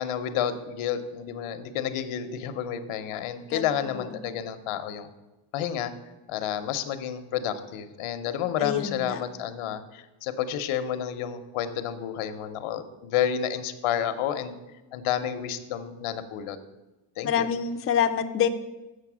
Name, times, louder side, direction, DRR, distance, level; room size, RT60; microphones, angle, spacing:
voice 1, 0.0-5.1 5.5-5.9 6.3-14.5 14.9-16.6 17.2-17.5, left 9 dB, 85° left, 10 dB, 0.9 m, -30 dB
voice 2, 8.6-9.2 17.2-18.5, left 8 dB, 30° left, 7 dB, 0.5 m, -26 dB
7.6 x 6.5 x 6.1 m, 1.1 s
cardioid pair, 135°, 49 cm